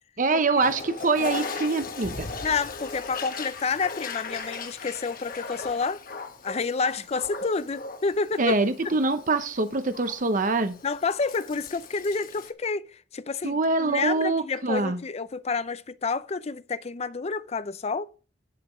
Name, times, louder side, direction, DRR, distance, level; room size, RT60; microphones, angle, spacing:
voice 1, 0.2-2.3 8.4-10.7 13.4-15.0, right 3 dB, 45° right, 0.8 m, -24 dB
Toilet flush, 0.5-12.5, left 4 dB, 50° left, 1.1 m, -38 dB
voice 2, 2.4-6.0 6.4-8.6 10.8-12.9 13.1-18.1, left 4 dB, 35° left, 0.5 m, -29 dB
11.0 x 5.0 x 5.0 m
head